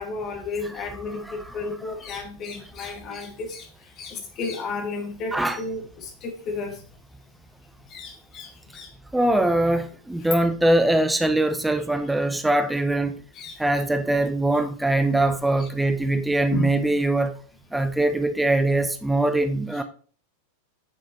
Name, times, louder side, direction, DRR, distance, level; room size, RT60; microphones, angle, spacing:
voice 1, 0.0-3.7 4.0-6.8 7.9-8.9 13.3-13.6 15.6-15.7 16.5-16.7, left 3 dB, 35° left, 2.5 m, -33 dB
voice 2, 9.1-13.2 13.6-17.4 17.7-19.8, right 1 dB, 5° right, 0.7 m, -22 dB
9.7 x 6.3 x 3.3 m
figure-of-eight pair, 90°, 0 cm